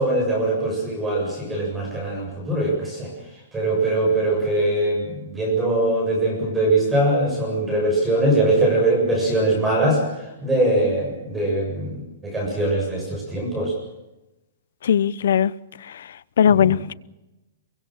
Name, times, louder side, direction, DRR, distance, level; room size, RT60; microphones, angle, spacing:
voice 1, 0.0-3.1 3.5-10.0 10.4-13.7 16.5-16.7, right 1 dB, 5° right, 7.4 m, -22 dB
voice 2, 14.8-15.5 16.4-16.9, left 8 dB, 65° left, 0.8 m, -18 dB
24.0 x 23.5 x 6.4 m
hypercardioid pair, 175°, 0 cm